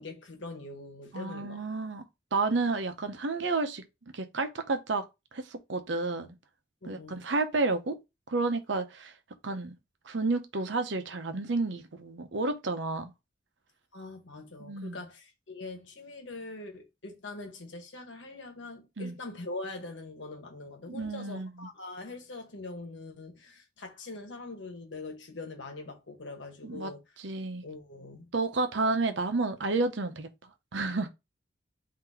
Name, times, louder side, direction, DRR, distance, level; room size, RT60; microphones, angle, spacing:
voice 1, 0.0-1.6 6.8-7.2 13.9-27.0 27.6-28.3, left 2 dB, 70° left, 1.3 m, -43 dB
voice 2, 1.1-2.0 2.3-3.8 4.1-5.0 5.3-6.3 6.9-8.0 8.3-9.1 9.4-9.7 10.1-13.1 14.6-15.0 19.0-19.2 20.9-21.7 26.6-26.9 27.2-27.6 28.3-30.3 30.7-31.1, right 3 dB, 70° right, 0.7 m, -31 dB
3.9 x 2.8 x 4.2 m
head